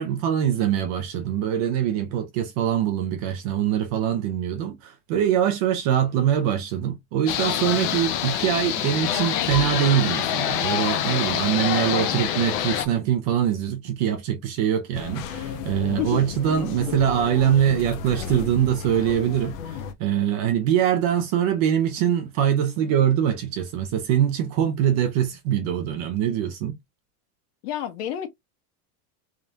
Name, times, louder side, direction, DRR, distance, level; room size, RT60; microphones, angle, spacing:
voice 1, 0.0-26.8, right 10 dB, 30° right, 0.4 m, -23 dB
sound 1, 7.3-12.9, left 10 dB, 35° left, 0.4 m, -25 dB
sound 2, 14.9-19.9, left 7 dB, 60° left, 0.8 m, -34 dB
voice 2, 15.9-16.2 27.6-28.3, left 11 dB, 80° left, 1.5 m, -29 dB
3.6 x 3.4 x 2.7 m
supercardioid pair, 175°, 46 cm